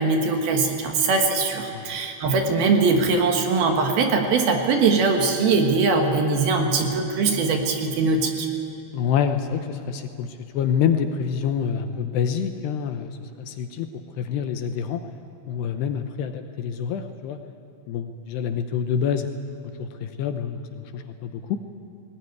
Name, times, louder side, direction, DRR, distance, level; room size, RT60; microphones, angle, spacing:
voice 1, 0.0-8.5, right 4 dB, 65° right, 3 dB, 3.0 m, -21 dB
voice 2, 8.9-13.9 14.2-15.0 15.5-17.4 17.9-19.3 19.8-21.6, left 7 dB, 75° left, 7 dB, 2.7 m, -27 dB
19.5 x 19.0 x 9.5 m, 2.8 s
omnidirectional pair, 5.3 m